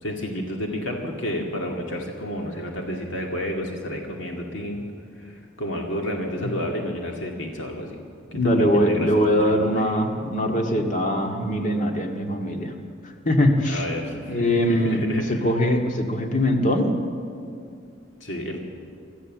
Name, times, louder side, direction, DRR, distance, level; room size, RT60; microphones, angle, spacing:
voice 1, 0.0-4.8 5.2-8.0 8.3-9.9 13.6-15.5 18.2-18.6, equal, 70° left, 0 dB, 2.3 m, -31 dB
voice 2, 8.3-12.7 13.3-13.8 14.3-15.0 15.3-16.9, left 1 dB, 40° left, 2 dB, 2.1 m, -22 dB
25.0 x 14.5 x 7.5 m, 2.4 s
head